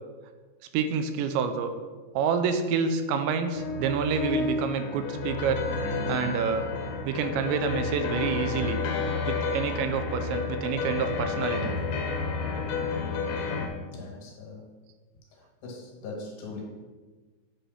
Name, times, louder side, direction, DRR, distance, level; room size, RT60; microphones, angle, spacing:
voice 1, 0.7-1.7 2.2-5.6 6.1-6.7 7.1-8.8 9.3-11.8, right 6 dB, 85° right, 8 dB, 2.8 m, -28 dB
sound 1, 3.6-13.7, left 4 dB, 85° left, 3.2 m, -30 dB
voice 2, 13.9-14.7 15.6-16.6, left 3 dB, 70° left, -1 dB, 3.4 m, -40 dB
8.6 x 3.3 x 6.1 m, 1.3 s
omnidirectional pair, 5.2 m